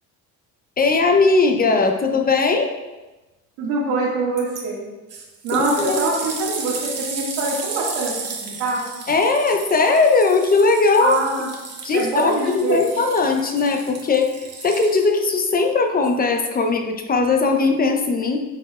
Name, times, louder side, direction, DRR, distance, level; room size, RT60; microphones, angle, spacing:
voice 1, 0.8-2.7 5.5-6.0 9.1-11.2 11.8-14.3 14.6-18.4, left 3 dB, 25° left, 4 dB, 0.7 m, -19 dB
voice 2, 3.6-4.9 5.4-8.1 8.4-8.8 11.0-11.5 11.9-12.8, right 2 dB, 90° right, -5 dB, 2.0 m, -24 dB
sound 1, 4.4-4.6 5.1-15.3 16.0-16.1, right 5 dB, 45° right, 1.1 m, -33 dB
8.8 x 4.5 x 2.4 m, 1.1 s
cardioid pair, 110°, 34 cm